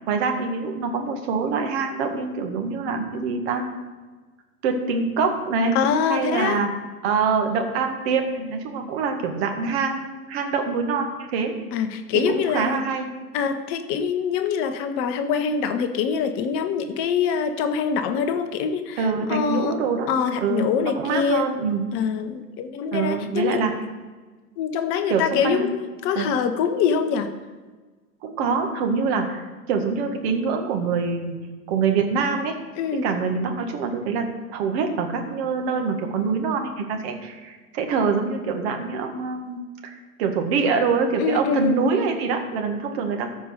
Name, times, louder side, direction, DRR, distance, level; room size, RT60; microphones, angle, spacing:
voice 1, 0.1-3.7 4.6-5.8 6.1-6.7 7.0-11.5 12.3-13.1 19.0-20.1 20.4-21.8 22.9-23.7 25.1-25.6 26.2-26.3 28.2-29.4 29.7-31.4 31.7-32.6 33.0-43.3, right 5 dB, 40° right, 4 dB, 1.7 m, -25 dB
voice 2, 5.7-6.6 11.7-12.8 13.3-19.0 19.3-19.8 20.1-21.5 21.9-23.6 24.6-27.3 32.8-33.1 41.2-41.8, left 7 dB, 25° left, 8 dB, 0.9 m, -24 dB
13.5 x 5.2 x 6.4 m, 1.3 s
figure-of-eight pair, 105°, 47 cm